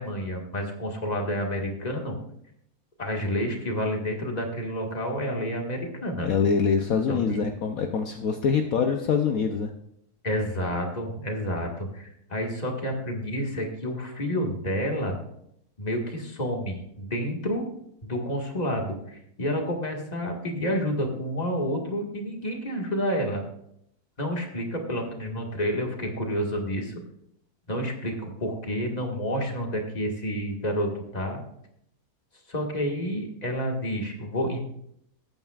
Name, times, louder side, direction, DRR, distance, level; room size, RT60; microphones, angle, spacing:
voice 1, 0.0-2.2 3.0-6.3 7.1-7.4 10.2-15.2 15.8-17.6 18.0-23.4 24.2-26.9 27.7-31.4 32.5-34.6, equal, 25° left, 1 dB, 1.9 m, -29 dB
voice 2, 6.2-9.7, left 6 dB, 65° left, 4 dB, 1.1 m, -24 dB
20.5 x 9.0 x 2.4 m, 0.74 s
omnidirectional pair, 1.6 m